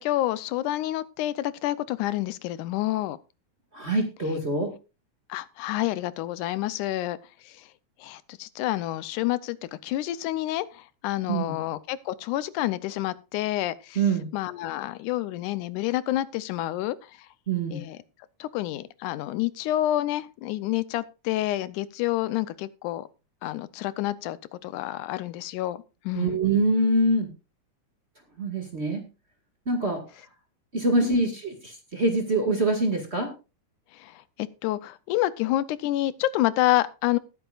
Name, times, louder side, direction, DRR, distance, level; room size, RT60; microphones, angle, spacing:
voice 1, 0.0-3.2 5.3-7.2 8.0-14.0 14.3-17.0 17.7-18.0 18.4-23.1 23.4-25.8 26.1-26.4 31.0-31.3 34.0-34.1 34.4-37.2, left 15 dB, 90° left, 2.2 m, -28 dB
voice 2, 3.7-4.7 11.3-11.6 14.0-14.3 17.5-17.8 26.1-27.3 28.4-29.1 29.7-30.0 30.7-33.3, right 2 dB, 25° right, 1.7 m, -24 dB
19.5 x 9.2 x 2.4 m
omnidirectional pair, 3.5 m